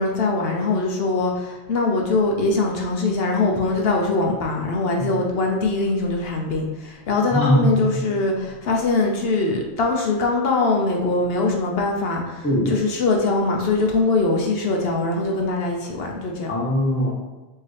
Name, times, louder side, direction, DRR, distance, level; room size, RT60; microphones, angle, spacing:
voice 1, 0.0-16.5, left 3 dB, 70° left, 1 dB, 0.9 m, -22 dB
voice 2, 7.3-7.9 12.4-12.7 16.5-17.1, equal, 15° left, -3 dB, 0.7 m, -20 dB
4.6 x 2.8 x 3.2 m, 1.1 s
omnidirectional pair, 1.1 m